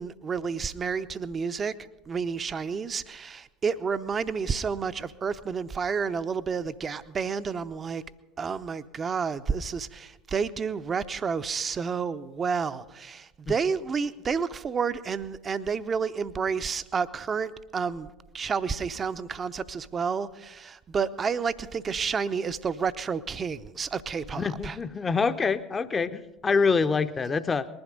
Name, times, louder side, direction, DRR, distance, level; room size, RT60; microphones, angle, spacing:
voice 1, 0.0-1.7 2.1-8.0 8.4-18.1 18.3-24.8, right 6 dB, 30° right, 12 dB, 0.7 m, -30 dB
voice 2, 24.3-27.7, left 4 dB, 25° left, 12 dB, 0.8 m, -26 dB
20.0 x 11.5 x 5.3 m, 1.0 s
figure-of-eight pair, 70°, 0 cm